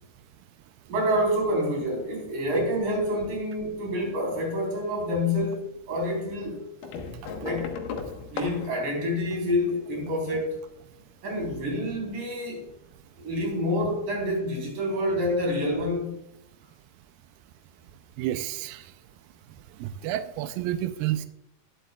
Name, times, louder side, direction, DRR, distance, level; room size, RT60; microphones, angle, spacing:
voice 1, 0.9-6.7 7.4-7.8 8.3-10.6 11.2-12.7 13.2-16.2, left 1 dB, 55° right, -1 dB, 5.4 m, -27 dB
sound 1, 6.8-10.0 11.3-12.1 13.3-13.4 13.6-13.7, left 5 dB, 65° left, 2.5 m, -37 dB
voice 2, 18.2-18.8 19.8-21.3, right 12 dB, 85° right, 10 dB, 2.1 m, -30 dB
19.5 x 7.8 x 2.3 m, 0.82 s
omnidirectional pair, 4.6 m